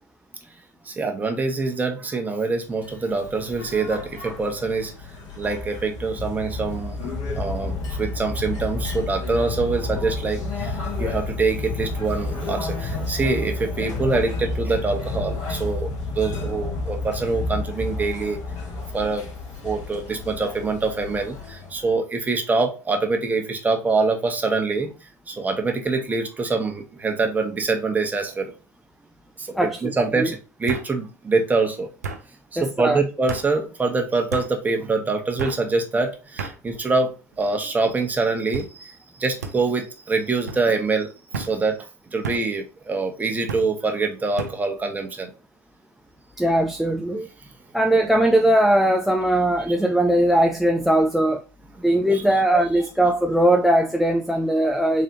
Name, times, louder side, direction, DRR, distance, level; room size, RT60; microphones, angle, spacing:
voice 1, 0.8-4.9 5.3-18.4 18.9-19.3 19.6-28.5 29.4-31.9 32.5-41.1 41.3-45.3 49.7-49.8, right 3 dB, 20° right, 1.2 m, -25 dB
sound 1, 2.8-21.9, left 3 dB, 45° left, 1.9 m, -31 dB
sound 2, 27.2-27.6 28.0-28.5 29.6-29.7 30.7-30.9 32.0-32.2 33.3-33.5 34.3-34.5 35.4-35.6 36.4-36.6 37.3-37.7 38.5-38.7 39.4-39.6 40.5-40.6 41.3-41.5 42.2-42.5 43.5-43.7 44.4-44.6, right 4 dB, 85° right, 0.7 m, -32 dB
voice 2, 29.5-30.3 32.6-33.0 46.4-47.3 47.7-51.4 51.8-55.0, right 1 dB, ahead, 0.5 m, -20 dB
3.9 x 3.2 x 2.9 m
hypercardioid pair, 75°, 9 cm